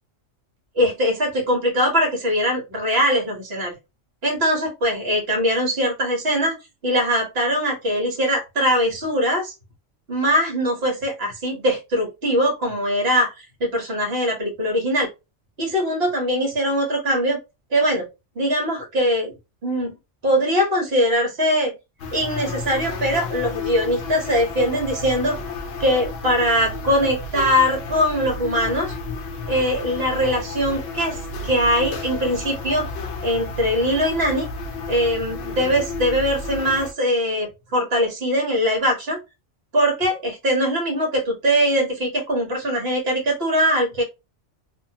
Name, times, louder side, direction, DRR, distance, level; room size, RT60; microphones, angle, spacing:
voice 1, 0.7-3.7 4.2-6.5 6.8-9.5 10.1-15.1 15.6-17.4 17.7-18.1 18.3-19.3 19.6-19.9 20.2-21.7 22.1-25.4 25.8-28.9 29.5-31.2 31.4-32.9 33.2-34.5 34.9-39.2 39.7-44.0, equal, 55° right, 0 dB, 1.4 m, -21 dB
sound 1, 22.0-36.9, left 3 dB, 70° left, 0.8 m, -32 dB
2.9 x 2.2 x 2.8 m, 0.25 s
omnidirectional pair, 1.3 m